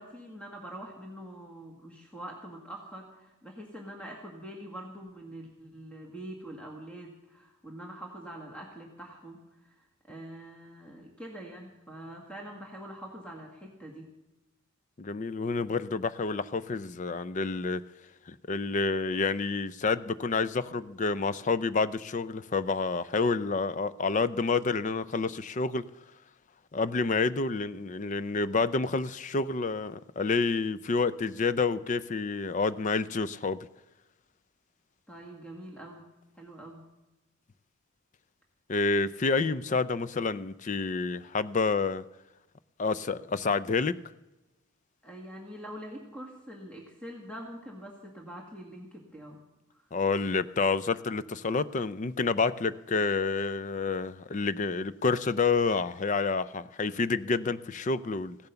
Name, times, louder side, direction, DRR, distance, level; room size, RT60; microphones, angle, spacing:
voice 1, 0.0-14.1 35.1-36.0 36.3-36.8 45.0-49.4 49.7-49.8, right 1 dB, 5° left, 0 dB, 1.9 m, -44 dB
voice 2, 15.0-17.8 18.3-25.8 26.7-33.6 38.7-42.0 42.8-44.0 49.9-58.4, left 4 dB, 35° left, 15 dB, 0.4 m, -29 dB
16.0 x 10.5 x 6.9 m, 1.0 s
head